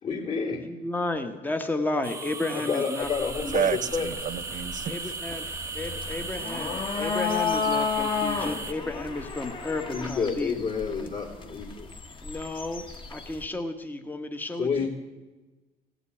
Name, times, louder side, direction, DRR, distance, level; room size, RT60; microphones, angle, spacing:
voice 1, 0.0-0.7 2.6-4.1 9.9-11.9 14.6-14.9, left 5 dB, 50° left, -6 dB, 3.1 m, -29 dB
voice 2, 0.6-3.8 4.9-5.4 5.7-10.6 11.0-11.1 12.2-12.8 13.1-14.9, left 2 dB, 10° left, 6 dB, 1.1 m, -33 dB
sound 1, 2.0-8.7, right 3 dB, 15° right, 1.1 m, -37 dB
sound 2, 3.0-13.4, left 5 dB, 30° left, 1.5 m, -33 dB
voice 3, 4.0-4.9, right 9 dB, 50° right, 12 dB, 0.8 m, -28 dB
16.0 x 8.1 x 8.7 m, 1.2 s
cardioid pair, 110°, 17 cm